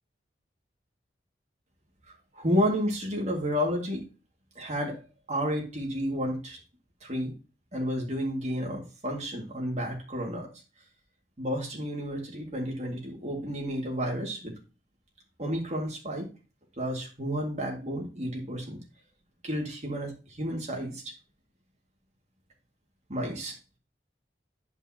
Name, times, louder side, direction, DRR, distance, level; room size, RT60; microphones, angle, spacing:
voice 1, 2.3-4.0 4.6-5.0 5.3-6.6 7.0-7.3 7.7-10.5 11.4-14.5 15.4-16.3 16.8-18.8 19.4-20.1 20.4-21.1 23.1-23.5, equal, 40° right, -1 dB, 2.0 m, -31 dB
9.3 x 5.4 x 2.8 m, 0.33 s
head